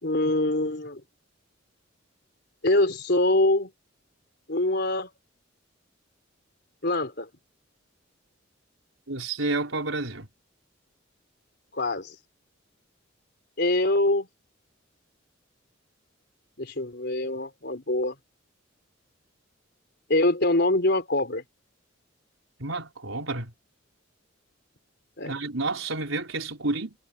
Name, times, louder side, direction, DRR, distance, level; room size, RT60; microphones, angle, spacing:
voice 1, 0.0-1.0 2.6-3.7 4.5-5.1 6.8-7.3 11.7-12.1 13.6-14.3 16.6-18.1 20.1-21.4 25.2-25.3, left 2 dB, 55° left, 4.1 m, -24 dB
voice 2, 9.1-10.3 22.6-23.5 25.2-26.9, right 2 dB, 85° right, 4.4 m, -30 dB
head